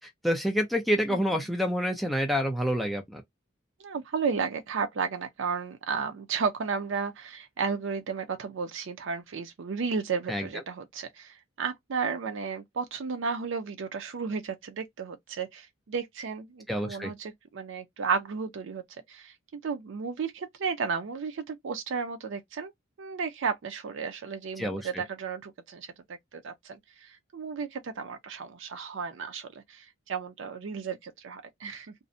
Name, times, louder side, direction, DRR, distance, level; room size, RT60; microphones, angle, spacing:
voice 1, 0.0-3.2 10.3-10.5 16.7-17.1 24.6-25.0, equal, ahead, 0.4 m, -28 dB
voice 2, 3.8-18.8 19.1-22.7 23.0-25.9 26.3-31.9, right 5 dB, 60° right, 0.4 m, -33 dB
2.5 x 2.0 x 2.5 m
head